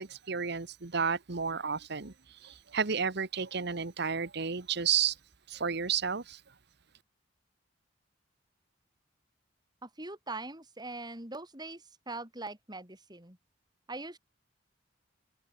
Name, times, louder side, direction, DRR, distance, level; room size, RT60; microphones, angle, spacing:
voice 1, 0.0-5.2 5.5-6.4, right 6 dB, 60° right, 1.3 m, -32 dB
voice 2, 9.8-13.4 13.9-14.2, right 2 dB, 20° right, 7.3 m, -42 dB
head